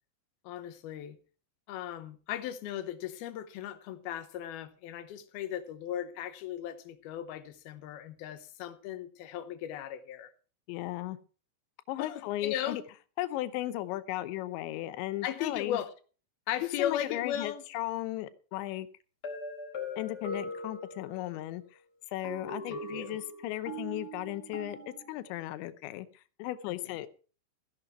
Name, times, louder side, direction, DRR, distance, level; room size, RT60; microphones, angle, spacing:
voice 1, 0.4-1.2 1.7-10.3 12.0-12.8 15.2-15.9 16.5-17.6 22.7-23.1 26.7-26.8, left 11 dB, 70° left, 2.6 m, -37 dB
voice 2, 10.7-11.2 11.9-12.8 13.2-15.8 16.6-18.9 20.0-21.6 22.1-26.1 26.4-27.1, left 15 dB, 90° left, 3.2 m, -36 dB
sound 1, 19.2-21.4 22.2-25.4, left 1 dB, 30° left, 5.1 m, -41 dB
15.5 x 11.0 x 4.5 m
omnidirectional pair, 5.1 m